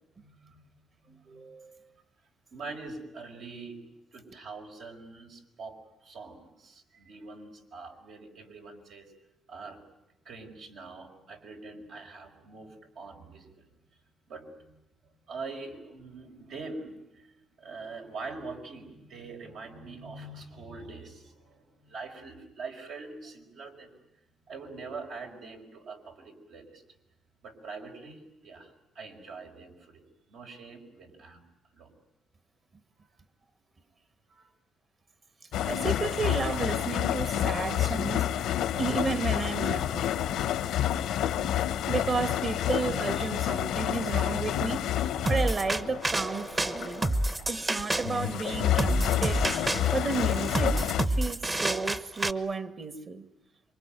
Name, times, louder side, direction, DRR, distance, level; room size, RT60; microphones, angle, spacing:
voice 1, 0.2-0.7 1.0-1.5 2.5-3.8 4.1-9.1 9.5-9.8 10.2-13.7 14.3-14.8 15.3-23.9 24.5-26.8 27.4-30.0 30.3-31.4 31.7-31.9 33.0-33.1 34.3-34.5, right 3 dB, 75° right, 5.4 m, -44 dB
voice 2, 1.1-1.8 35.6-38.3 38.8-40.1 41.9-47.1 47.5-49.5 49.9-50.8 51.1-53.3, right 4 dB, 40° right, 1.9 m, -32 dB
sound 1, 35.5-47.5 47.8-51.1, left 11 dB, 85° left, 0.9 m, -29 dB
sound 2, 45.3-52.3, right 1 dB, 25° right, 1.1 m, -29 dB
27.0 x 24.0 x 9.2 m
cardioid pair, 90°, 0 cm